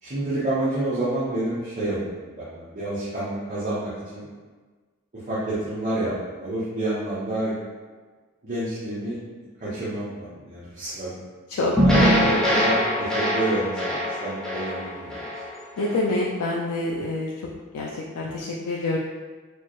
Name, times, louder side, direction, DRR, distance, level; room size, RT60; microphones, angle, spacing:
voice 1, 0.0-4.3 5.1-7.5 8.4-9.2 9.6-11.1 11.8-15.3, right 1 dB, 35° right, -10 dB, 0.7 m, -28 dB
voice 2, 11.5-12.3 15.8-17.3 17.7-19.0, left 2 dB, 85° left, -4 dB, 0.4 m, -26 dB
sound 1, 11.8-16.1, equal, ahead, 0.5 m, -23 dB
4.5 x 2.0 x 3.0 m, 1.4 s
head